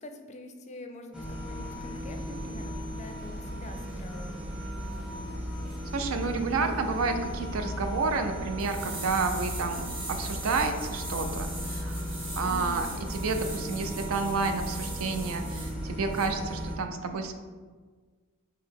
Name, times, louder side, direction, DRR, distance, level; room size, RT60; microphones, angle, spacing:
voice 1, 0.0-4.5 12.4-12.9, left 2 dB, 35° left, 5 dB, 0.4 m, -44 dB
sound 1, 1.1-16.7, equal, 5° right, 0.7 m, -36 dB
voice 2, 5.9-12.1 12.4-17.3, right 4 dB, 75° right, 7 dB, 0.4 m, -30 dB
sound 2, 8.6-15.7 16.1-16.3, right 2 dB, 25° right, 1.1 m, -41 dB
3.9 x 2.9 x 4.6 m, 1.5 s
head